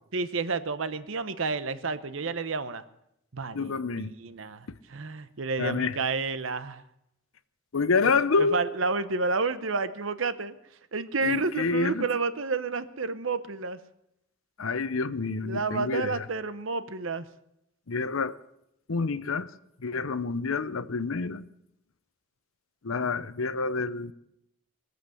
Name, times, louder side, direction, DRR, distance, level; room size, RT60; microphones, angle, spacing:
voice 1, 0.1-2.8 3.3-6.8 8.4-10.5 10.9-13.8 15.4-17.2, right 4 dB, 65° right, 0.9 m, -30 dB
voice 2, 3.5-4.1 5.6-6.0 7.7-8.6 11.2-12.0 14.6-16.2 17.9-18.3 18.9-19.5 19.8-21.4 22.8-24.1, left 4 dB, 75° left, 0.8 m, -28 dB
22.0 x 8.0 x 7.8 m
head